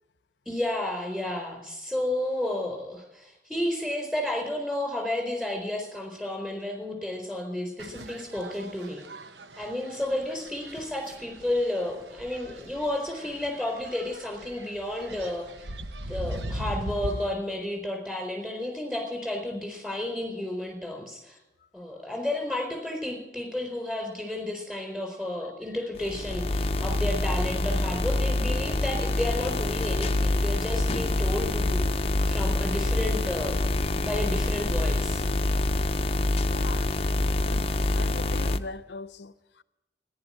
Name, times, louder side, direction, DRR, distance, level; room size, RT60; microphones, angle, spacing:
voice 1, 0.5-9.0 9.5-15.7 16.1-21.4 21.7-33.7 34.0-35.2, left 1 dB, 5° right, 4.4 m, -32 dB
sound 1, 7.8-17.3, right 1 dB, 80° right, 1.1 m, -40 dB
sound 2, 25.9-38.6, left 2 dB, 35° left, 0.6 m, -26 dB
voice 2, 36.5-36.9 37.4-39.6, left 3 dB, 85° left, 0.7 m, -41 dB
14.0 x 11.0 x 8.7 m
head